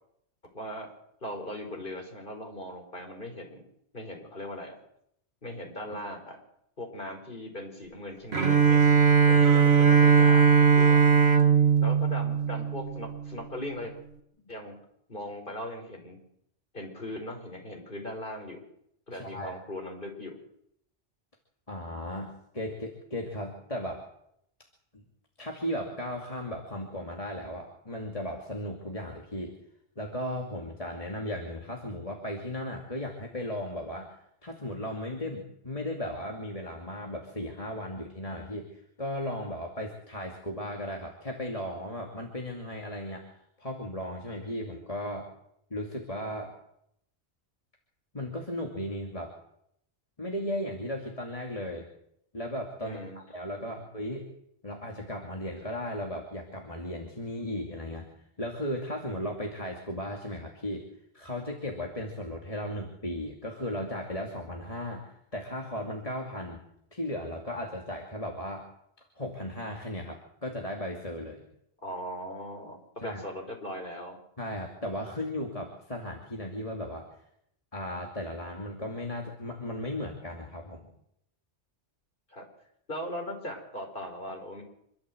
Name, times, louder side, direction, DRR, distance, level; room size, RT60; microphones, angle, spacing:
voice 1, 0.5-0.9 1.2-3.6 3.9-4.8 5.4-6.4 6.8-8.8 9.3-11.0 11.8-13.9 14.5-14.8 15.1-16.2 16.7-18.6 19.1-20.4 52.8-53.2 53.7-53.8 71.8-72.8 73.0-74.2 82.3-82.4 82.9-84.6, left 1 dB, 45° left, 3 dB, 5.2 m, -39 dB
Bowed string instrument, 8.3-13.3, right 6 dB, 65° right, 2.1 m, -20 dB
voice 2, 19.1-19.6 21.7-24.0 24.9-25.0 25.4-29.5 30.0-45.3 45.7-46.5 48.1-49.3 50.2-51.9 52.3-54.3 54.6-58.1 58.4-60.8 61.1-66.6 66.9-68.7 69.2-71.4 73.0-73.2 74.4-77.1 77.7-80.8, left 1 dB, 30° left, 0 dB, 2.6 m, -36 dB
26.5 x 13.0 x 7.9 m, 0.74 s
omnidirectional pair, 1.2 m